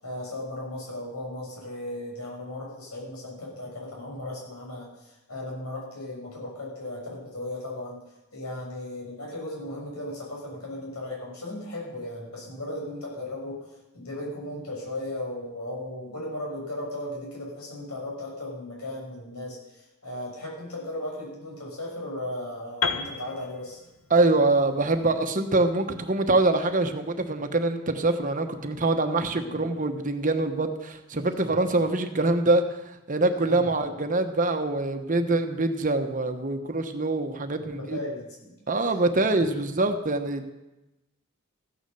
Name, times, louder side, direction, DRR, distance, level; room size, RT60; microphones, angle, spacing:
voice 1, 0.0-8.0 8.3-13.7 13.9-23.8 29.4-29.6 33.5-33.7 37.5-38.5, left 1 dB, 90° left, -3 dB, 6.9 m, -36 dB
Piano, 22.8-26.7, left 5 dB, 65° left, 1.2 m, -34 dB
voice 2, 24.1-32.8 33.1-38.0 38.7-40.5, right 2 dB, 35° right, 7 dB, 1.1 m, -24 dB
15.0 x 9.8 x 6.9 m, 0.98 s
head